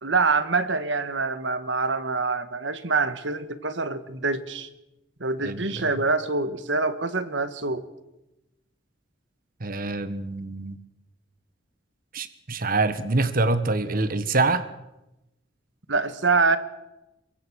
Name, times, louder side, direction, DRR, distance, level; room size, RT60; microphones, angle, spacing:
voice 1, 0.0-4.7 5.2-7.8 15.9-16.6, right 4 dB, 80° right, 12 dB, 1.8 m, -25 dB
voice 2, 5.4-5.8 9.6-10.8 12.1-14.6, right 3 dB, 50° right, 12 dB, 1.4 m, -25 dB
24.0 x 22.5 x 6.4 m, 0.93 s
head